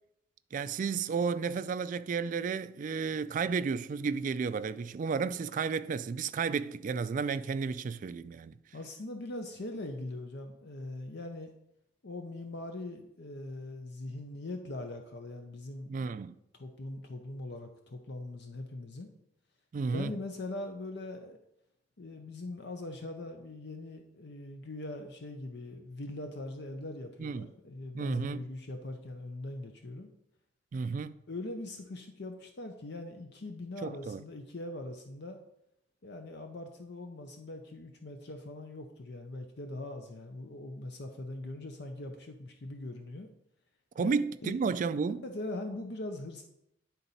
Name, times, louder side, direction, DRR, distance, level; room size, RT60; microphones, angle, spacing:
voice 1, 0.5-8.5 15.9-16.3 19.7-20.1 27.2-27.5 27.9-28.5 30.7-31.1 33.8-34.2 44.0-45.2, right 5 dB, 45° right, 0.3 m, -32 dB
voice 2, 8.7-11.5 12.0-16.1 16.5-19.1 19.9-21.4 22.0-30.1 31.3-35.4 36.0-43.3 44.0-44.1 44.4-44.7 45.2-46.4, left 2 dB, 65° left, 0.7 m, -41 dB
10.0 x 4.0 x 4.1 m
head